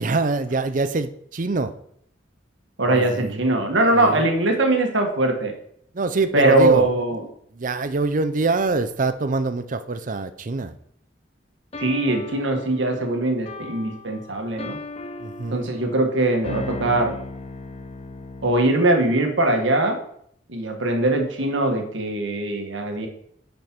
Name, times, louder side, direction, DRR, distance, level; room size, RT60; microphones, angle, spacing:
voice 1, 0.0-1.7 2.8-3.5 3.9-4.3 5.9-6.9 7.5-10.7 15.2-15.7, right 3 dB, 45° right, 11 dB, 0.6 m, -24 dB
voice 2, 2.8-5.5 6.3-7.2 11.8-14.8 15.5-17.1 18.4-20.0 20.5-23.1, right 2 dB, 85° right, 4 dB, 1.5 m, -21 dB
sound 1, 11.7-18.7, left 2 dB, 35° left, 0.7 m, -37 dB
9.7 x 5.3 x 4.4 m, 0.68 s
head